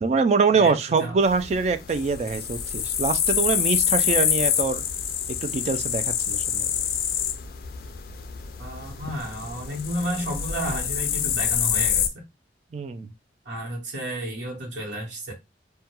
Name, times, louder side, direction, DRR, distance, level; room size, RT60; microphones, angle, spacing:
voice 1, 0.0-4.8 5.4-6.7 12.7-13.1, right 4 dB, 35° right, 0.3 m, -24 dB
sound 1, 1.2-12.1, left 9 dB, 55° left, 0.3 m, -26 dB
voice 2, 8.6-12.2 13.4-15.3, equal, 80° right, 1.0 m, -32 dB
2.3 x 2.2 x 2.9 m
head